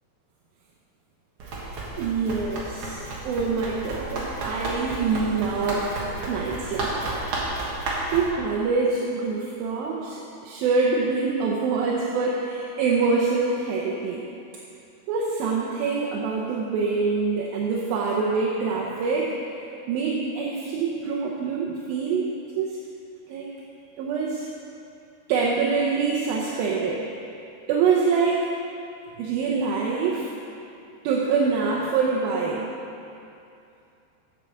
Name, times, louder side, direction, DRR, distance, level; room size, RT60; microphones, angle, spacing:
Run, 1.4-8.3, right 2 dB, 55° right, 1.7 m, -32 dB
voice 1, 2.0-6.0 6.3-7.2 8.1-14.2 15.1-22.3 22.6-22.8 23.3-23.5 24.0-24.5 25.3-27.1 27.7-28.5 29.2-30.3 31.0-32.7, right 4 dB, 75° right, -3 dB, 2.5 m, -25 dB
8.4 x 8.2 x 6.6 m, 2.6 s
omnidirectional pair, 4.6 m